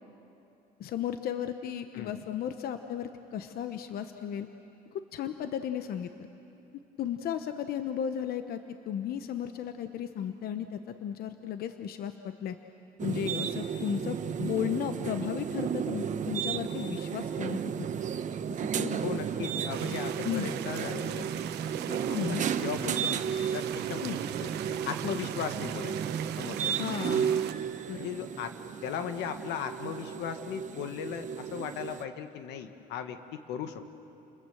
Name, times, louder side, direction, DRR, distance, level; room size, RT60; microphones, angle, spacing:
voice 1, 0.8-4.5 4.9-6.3 7.0-8.6 8.9-12.6 13.0-17.9 18.5-19.1 20.2-20.5 22.1-22.4 24.0-24.2 26.7-27.4 27.9-28.1, left 9 dB, 65° left, 8 dB, 1.0 m, -35 dB
voice 2, 1.9-2.2 19.0-21.4 21.8-26.7 28.0-28.5 28.8-33.9, left 8 dB, 85° left, 8 dB, 1.5 m, -38 dB
sound 1, 13.0-32.0, right 8 dB, 45° right, 1.0 m, -33 dB
sound 2, 19.7-27.5, right 12 dB, 80° right, 1.0 m, -41 dB
30.0 x 21.0 x 7.8 m, 2.9 s
cardioid pair, 110°, 17 cm